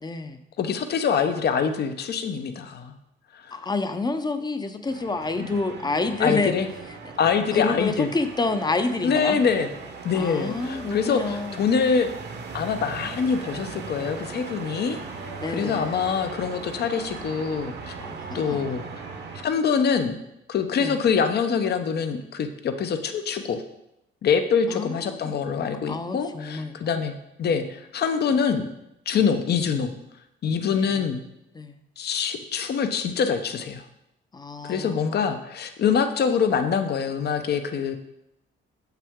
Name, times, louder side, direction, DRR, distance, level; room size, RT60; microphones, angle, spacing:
voice 1, 0.0-0.4 3.5-6.5 7.5-9.4 10.1-11.6 15.4-15.9 18.0-18.8 20.8-21.0 24.7-25.4 25.9-27.1 30.6-31.0 31.5-31.8 34.3-35.3, left 3 dB, 20° left, 9 dB, 0.6 m, -29 dB
voice 2, 0.6-2.9 3.3-3.5 5.4-5.5 6.2-6.7 7.2-8.1 9.0-9.7 10.0-12.1 12.5-15.0 15.5-17.9 18.3-18.8 19.4-20.2 20.5-23.6 24.2-27.1 27.4-28.7 29.1-29.9 30.4-31.2 32.0-33.8 34.6-38.0, left 6 dB, 55° left, 8 dB, 0.7 m, -24 dB
sound 1, 4.9-19.4, right 4 dB, 60° right, 1.0 m, -38 dB
7.0 x 5.7 x 3.6 m, 0.85 s
cardioid pair, 90°, 20 cm